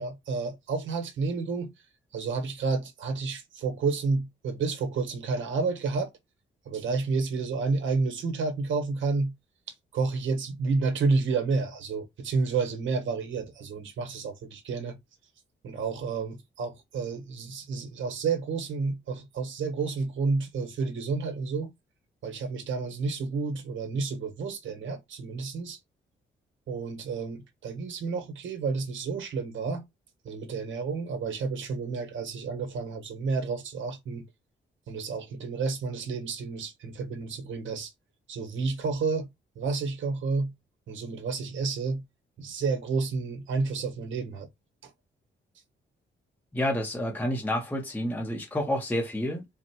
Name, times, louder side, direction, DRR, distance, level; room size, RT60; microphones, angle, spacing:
voice 1, 0.0-1.7 2.1-6.1 6.6-9.3 9.9-15.0 15.6-21.7 22.2-25.8 26.7-29.8 30.2-34.2 34.9-37.9 38.3-39.3 39.5-40.5 40.9-42.0 42.4-44.5 44.8-44.9, right 4 dB, 80° right, 1.4 m, -30 dB
voice 2, 46.5-49.5, left 1 dB, 10° left, 0.8 m, -29 dB
4.3 x 2.2 x 4.4 m
wide cardioid pair, 175°, 20 cm